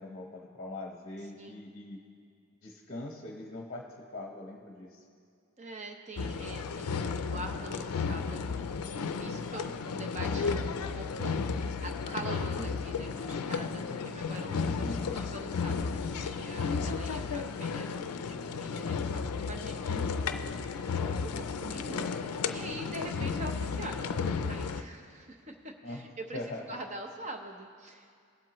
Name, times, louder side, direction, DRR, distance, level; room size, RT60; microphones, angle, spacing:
voice 1, 0.0-2.0 2.6-3.8 4.1-5.0 12.5-12.8 14.8-15.2 19.9-20.1 25.8-26.6, left 2 dB, 35° left, 0 dB, 0.8 m, -42 dB
voice 2, 5.6-20.0 21.2-28.2, right 2 dB, 30° right, 4 dB, 0.7 m, -44 dB
sound 1, 6.2-24.8, left 5 dB, 85° left, 0.4 m, -33 dB
18.5 x 7.6 x 3.0 m, 2.3 s
head